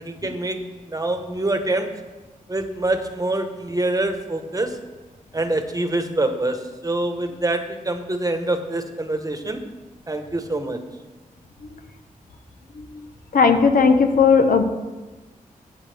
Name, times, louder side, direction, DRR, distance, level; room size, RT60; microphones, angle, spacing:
voice 1, 0.0-1.9 2.5-4.8 5.3-9.6 10.1-10.8, right 2 dB, 25° right, 7 dB, 1.1 m, -25 dB
voice 2, 13.3-14.6, left 5 dB, 80° left, 7 dB, 1.0 m, -16 dB
16.0 x 8.6 x 3.4 m, 1.2 s
cardioid pair, 70°, 14 cm